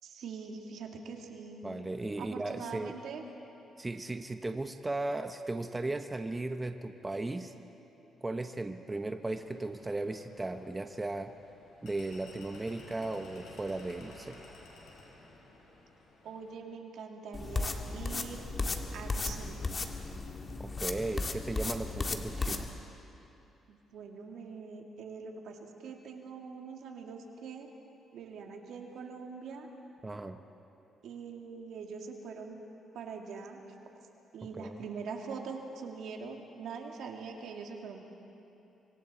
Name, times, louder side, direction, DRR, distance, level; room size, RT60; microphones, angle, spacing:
voice 1, 0.0-1.6 2.2-3.2 16.2-18.4 18.9-19.8 23.7-27.7 28.1-29.7 31.0-32.6 32.9-33.6 34.3-38.0, right 5 dB, 75° right, 2 dB, 2.2 m, -43 dB
voice 2, 1.6-2.9 3.8-7.5 8.2-11.3 11.8-14.4 20.6-22.7 30.0-30.4 34.6-34.8, right 2 dB, 20° right, 7 dB, 0.9 m, -36 dB
sound 1, 9.2-16.5, left 2 dB, 80° left, 5.3 m, -54 dB
sound 2, 17.3-22.6, left 3 dB, 35° left, 1.7 m, -35 dB
24.5 x 24.5 x 4.3 m, 3.0 s
cardioid pair, 75°, 0 cm